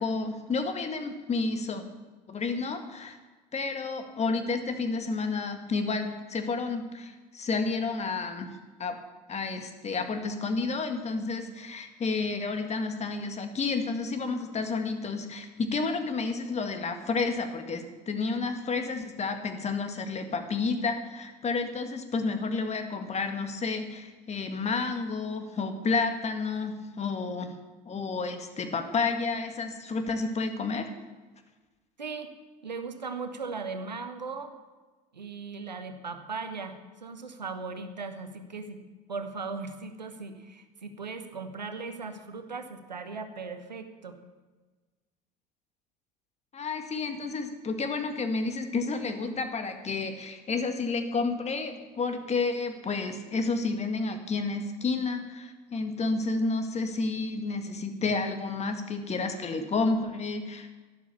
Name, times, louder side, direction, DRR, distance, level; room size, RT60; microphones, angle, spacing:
voice 1, 0.0-1.8 2.3-3.2 3.5-9.0 9.3-27.5 27.9-30.9 46.5-60.7, left 4 dB, 30° left, 7 dB, 1.8 m, -30 dB
voice 2, 32.0-32.3 32.6-34.5 35.1-38.8 39.1-44.2, right 4 dB, 90° right, 8 dB, 1.1 m, -38 dB
12.0 x 12.0 x 7.1 m, 1.3 s
figure-of-eight pair, 65°, 21 cm